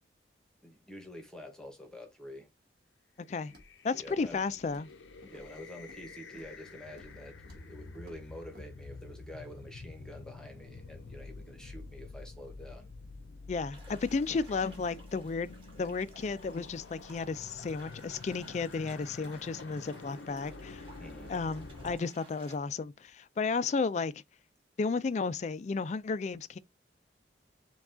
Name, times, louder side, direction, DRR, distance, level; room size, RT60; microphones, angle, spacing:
voice 1, 0.6-2.5 3.9-4.4 5.2-12.9 21.0-21.3, left 1 dB, 5° left, 0.9 m, -48 dB
sound 1, 3.5-22.0, left 3 dB, 85° left, 0.6 m, -48 dB
Walk footsteps, 3.5-3.8 4.1-4.4 4.6-5.0 5.2-6.1 6.3-6.6 6.9-7.2 7.4-7.7 7.9-8.2 8.5-8.7, left 1 dB, 60° right, 1.6 m, -56 dB
voice 2, 3.8-4.9 13.5-20.8 21.3-24.1 24.8-26.6, left 4 dB, 40° left, 0.3 m, -33 dB
sound 2, 13.7-22.5, right 2 dB, 30° right, 1.7 m, -56 dB
4.7 x 2.3 x 3.7 m
head